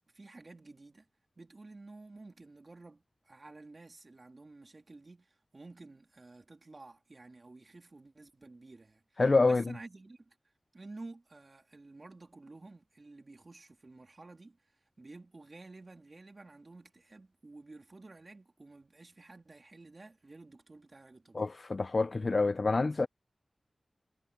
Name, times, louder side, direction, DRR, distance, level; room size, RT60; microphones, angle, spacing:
voice 1, 0.1-1.1 1.3-9.2 9.5-10.4 10.7-21.5, right 2 dB, 45° right, 3.3 m, -52 dB
voice 2, 9.2-9.7 21.3-23.1, left 3 dB, 50° left, 0.6 m, -27 dB
wide cardioid pair, 90°, 0 cm